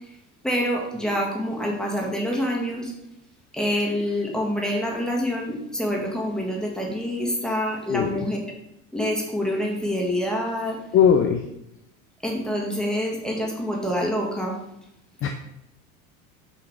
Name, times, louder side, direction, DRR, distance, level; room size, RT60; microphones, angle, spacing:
voice 1, 0.4-2.9 3.5-8.4 8.9-10.8 12.2-14.6, equal, ahead, -1 dB, 1.7 m, -26 dB
voice 2, 7.9-8.3 10.9-11.5 15.2-15.3, left 7 dB, 35° left, 5 dB, 0.6 m, -19 dB
6.1 x 3.8 x 4.9 m, 0.83 s
hypercardioid pair, 85°, 40 cm